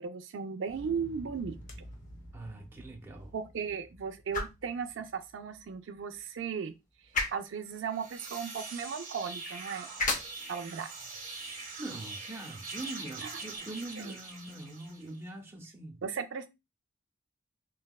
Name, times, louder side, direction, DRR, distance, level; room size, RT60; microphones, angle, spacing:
voice 1, 0.0-1.6 3.3-6.7 7.3-9.9 10.5-10.9 13.2-13.3 14.0-14.2 16.0-16.5, right 6 dB, 70° right, 0.4 m, -36 dB
Explosion, 0.6-6.7 7.0-7.1, equal, 75° left, 1.0 m, -51 dB
sound 1, 1.5-13.6, left 3 dB, 40° left, 0.6 m, -41 dB
voice 2, 2.3-3.3 11.8-16.0, right 2 dB, 10° right, 0.6 m, -43 dB
sound 2, 7.8-15.2, right 3 dB, 45° right, 0.8 m, -43 dB
3.5 x 2.2 x 2.2 m
head